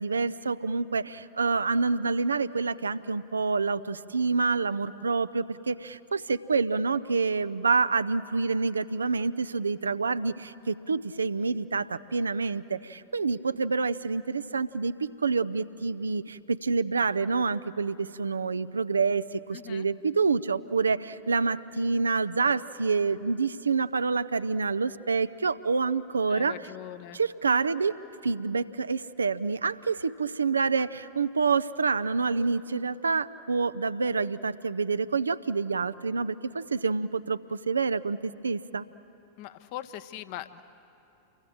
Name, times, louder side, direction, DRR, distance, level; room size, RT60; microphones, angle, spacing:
voice 1, 0.0-26.7 27.1-27.9 28.2-38.9, right 4 dB, 75° right, 15 dB, 0.5 m, -27 dB
voice 2, 19.5-19.9 26.3-27.2 39.4-40.6, left 13 dB, 45° left, 12 dB, 0.9 m, -41 dB
29.0 x 23.5 x 7.7 m, 2.8 s
figure-of-eight pair, 90°, 0 cm